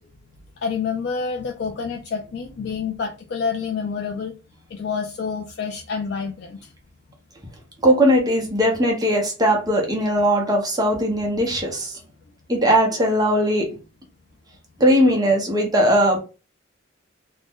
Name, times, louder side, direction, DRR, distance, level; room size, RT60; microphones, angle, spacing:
voice 1, 0.6-4.3 4.7-6.7, left 5 dB, 55° left, 0.3 m, -28 dB
voice 2, 7.8-12.0 12.5-13.8 14.8-16.2, equal, 20° right, 0.6 m, -19 dB
2.5 x 2.1 x 3.5 m
head